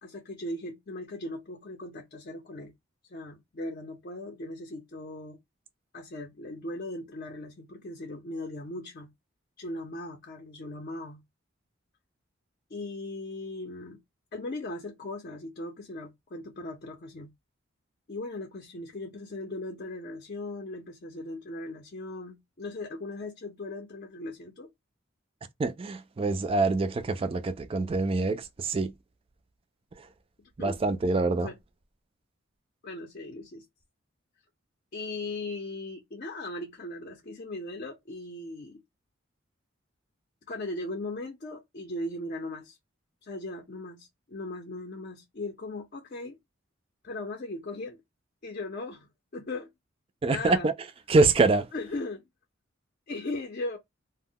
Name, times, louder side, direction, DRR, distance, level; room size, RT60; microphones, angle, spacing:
voice 1, 0.0-2.7 3.1-5.4 5.9-9.1 9.6-11.2 12.7-14.0 14.3-17.3 18.1-24.7 30.4-30.8 31.4-31.6 32.8-33.7 34.9-38.8 40.5-42.8 43.2-46.4 47.0-48.0 48.4-49.7 50.2-50.7 51.7-52.2 53.1-53.8, left 2 dB, 45° left, 0.5 m, -38 dB
voice 2, 25.6-28.9 30.0-30.1 30.6-31.5 50.2-50.7 51.1-51.7, right 3 dB, 30° right, 0.3 m, -25 dB
2.1 x 2.1 x 3.6 m
head